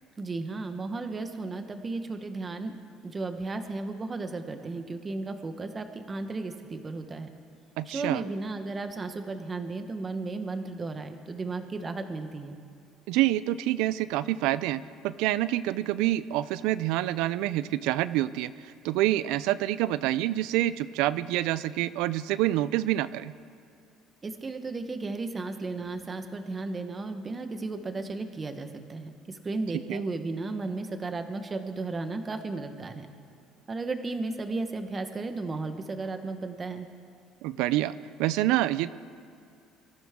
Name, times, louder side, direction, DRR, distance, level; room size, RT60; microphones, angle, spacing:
voice 1, 0.2-2.7 3.0-7.3 7.9-12.6 24.2-33.1 33.7-36.9, right 3 dB, 25° right, 7 dB, 1.2 m, -34 dB
voice 2, 7.8-8.2 13.1-23.3 29.7-30.0 37.4-38.9, right 14 dB, 80° right, 16 dB, 0.4 m, -27 dB
24.0 x 14.0 x 3.7 m, 2.4 s
cardioid pair, 120°, 0 cm